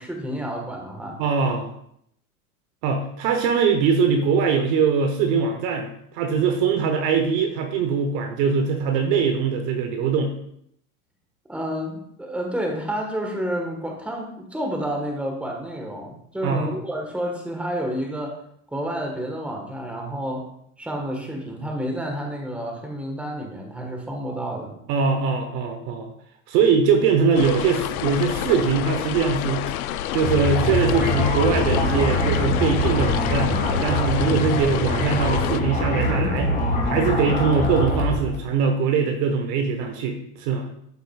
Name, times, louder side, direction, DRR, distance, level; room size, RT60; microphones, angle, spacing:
voice 1, 0.0-1.2 11.5-18.4 18.7-20.5 20.8-24.7, equal, 5° right, 1 dB, 1.4 m, -30 dB
voice 2, 1.2-1.7 2.8-10.3 16.4-16.8 24.9-26.1 26.5-29.7 30.1-33.5 33.8-36.5 36.9-40.7, right 5 dB, 45° right, 5 dB, 1.0 m, -22 dB
sound 1, 27.4-35.6, left 11 dB, 70° left, 0.6 m, -28 dB
sound 2, 30.2-38.4, left 1 dB, 20° left, 2.1 m, -24 dB
12.0 x 4.6 x 2.4 m, 0.71 s
hypercardioid pair, 120°, 44 cm